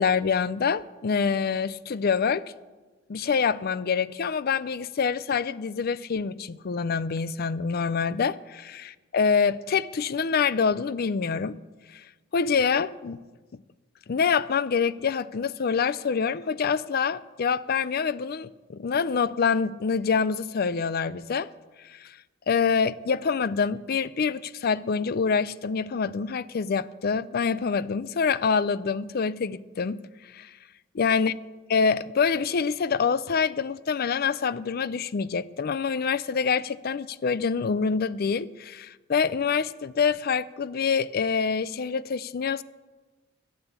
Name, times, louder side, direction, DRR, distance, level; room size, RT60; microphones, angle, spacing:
voice 1, 0.0-2.4 3.1-11.6 11.9-12.0 12.3-13.2 14.1-21.5 21.8-22.2 22.5-30.0 30.3-30.5 30.9-31.4 31.7-42.6, left 5 dB, 50° left, 0.4 m, -26 dB
12.5 x 8.9 x 8.2 m
head